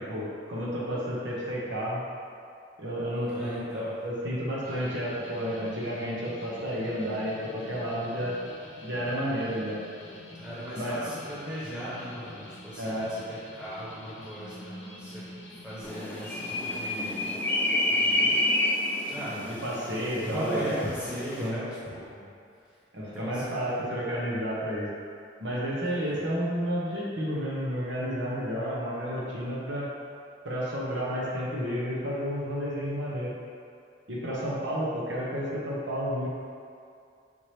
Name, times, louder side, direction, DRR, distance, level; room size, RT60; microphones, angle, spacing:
voice 1, 0.5-2.0 2.8-8.3 8.8-9.8 10.8-11.0 12.8-13.1 16.7-16.8 19.5-20.7 21.4-21.6 22.9-24.9 25.4-29.9 30.4-33.3 34.1-36.3, equal, 75° right, -6 dB, 1.0 m, -31 dB
voice 2, 3.1-3.9 10.3-15.2 15.6-17.4 18.0-18.4 19.1-19.5 20.2-22.3 22.9-24.0 26.0-26.2, equal, 5° right, -11 dB, 1.0 m, -38 dB
sound 1, 4.6-17.4, left 1 dB, 70° left, 0.8 m, -47 dB
sound 2, 15.8-21.5, left 1 dB, 10° left, 0.5 m, -29 dB
5.7 x 2.9 x 3.2 m, 2.4 s
head